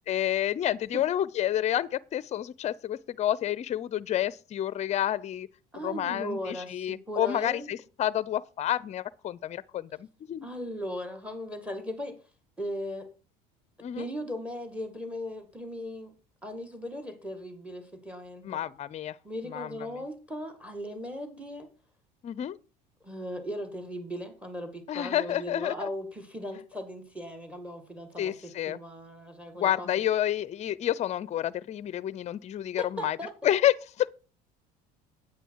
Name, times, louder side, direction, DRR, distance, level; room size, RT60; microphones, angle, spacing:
voice 1, 0.1-5.5 5.8-10.5 13.8-14.0 18.4-19.2 19.5-19.8 22.2-22.6 24.9-25.9 28.2-28.8 29.6-33.2 33.4-34.1, left 11 dB, 35° left, 0.5 m, -29 dB
voice 2, 5.7-7.7 10.4-12.2 12.6-13.1 14.0-16.1 16.4-18.6 19.2-21.7 23.0-30.0 32.8-33.5, equal, 5° right, 1.9 m, -38 dB
9.0 x 8.7 x 4.6 m
supercardioid pair, 100°, 19 cm